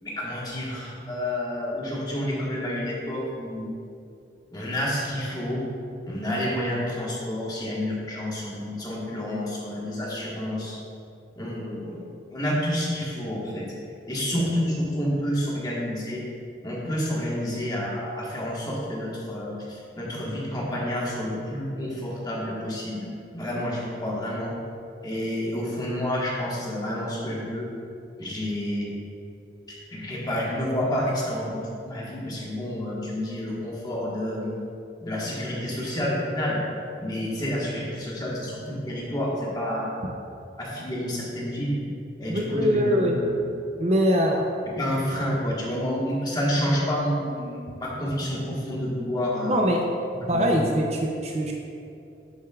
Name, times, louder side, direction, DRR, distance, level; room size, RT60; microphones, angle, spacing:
voice 1, 0.0-3.7 4.5-5.6 6.0-10.7 11.4-13.7 14.1-16.2 16.6-23.1 23.3-24.5 25.0-27.7 28.2-28.9 29.9-34.5 35.0-36.6 37.0-40.1 40.6-41.8 42.2-43.4 44.8-49.6 50.1-50.6, equal, 20° left, -5 dB, 1.3 m, -29 dB
voice 2, 42.3-43.2 43.8-44.5 49.5-49.8 50.3-51.5, equal, 35° right, 1 dB, 0.5 m, -22 dB
10.5 x 6.3 x 2.3 m, 2.6 s
head